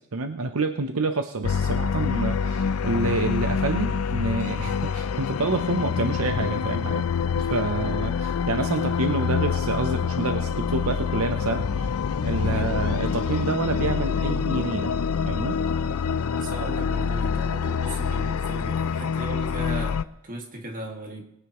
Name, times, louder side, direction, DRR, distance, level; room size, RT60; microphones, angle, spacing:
voice 1, 0.1-7.1 7.4-11.9 12.2-14.9 15.3-15.6, right 3 dB, 70° right, 7 dB, 0.7 m, -28 dB
sound 1, 1.4-20.0, left 6 dB, 70° left, 0.5 m, -26 dB
voice 2, 16.3-20.0 20.2-21.2, right 1 dB, 40° right, 2 dB, 1.9 m, -36 dB
22.0 x 9.1 x 3.1 m, 0.84 s
head